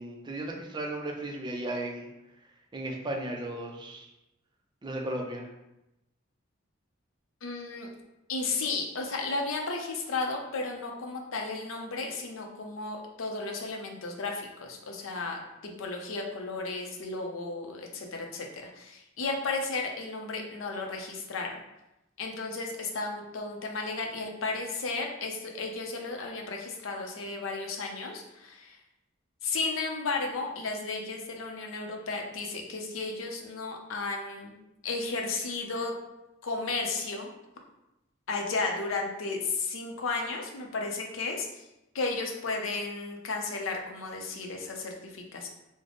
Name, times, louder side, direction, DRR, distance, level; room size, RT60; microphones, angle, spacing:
voice 1, 0.0-2.1 2.7-4.1 4.8-5.5, right 1 dB, 20° right, 1 dB, 0.5 m, -35 dB
voice 2, 7.4-7.9 8.3-21.5 22.2-28.8 29.4-35.9 36.4-37.3 38.3-41.7 41.9-45.5, left 3 dB, 80° left, 2 dB, 0.6 m, -34 dB
3.3 x 2.1 x 3.7 m, 0.92 s
head